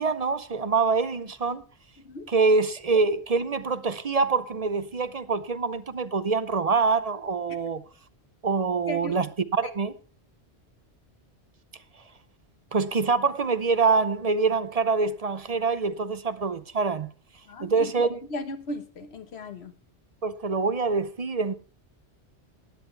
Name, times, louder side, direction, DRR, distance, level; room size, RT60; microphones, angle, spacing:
voice 1, 0.0-1.6 2.3-7.8 8.4-9.9 12.7-17.1 17.6-18.2 20.2-21.5, right 4 dB, 40° right, 0.7 m, -25 dB
voice 2, 2.0-2.3 8.9-9.1 17.5-19.7, left 1 dB, 75° left, 1.5 m, -37 dB
16.0 x 10.0 x 3.3 m
omnidirectional pair, 1.1 m